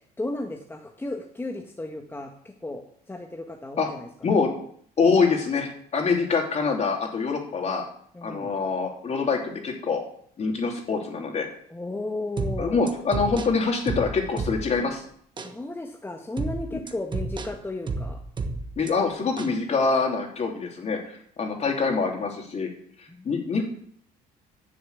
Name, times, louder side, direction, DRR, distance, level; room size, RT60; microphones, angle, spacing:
voice 1, 0.2-2.3 2.6-4.1 8.1-8.5 11.7-12.8 15.4-18.2 23.1-23.3, left 2 dB, 15° left, 3 dB, 1.3 m, -34 dB
voice 2, 5.0-7.8 8.2-10.0 10.4-11.5 12.6-15.0 16.7-16.8 18.8-22.7 23.0-23.6, left 4 dB, 40° left, 2 dB, 3.2 m, -25 dB
sound 1, 12.4-14.9 15.4-15.6 16.4-18.9 19.4-19.6, right 3 dB, 25° right, 1.3 m, -32 dB
10.5 x 6.9 x 8.4 m, 0.62 s
cardioid pair, 110°, 17 cm